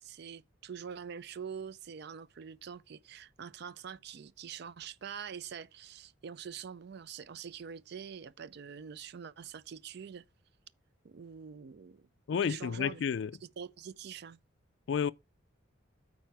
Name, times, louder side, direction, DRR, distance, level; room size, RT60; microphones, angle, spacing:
voice 1, 0.0-10.2 11.0-13.0 13.4-14.4, right 7 dB, 55° right, 0.4 m, -45 dB
voice 2, 12.3-13.3 14.9-15.1, left 7 dB, 60° left, 0.3 m, -31 dB
9.0 x 4.2 x 4.6 m
head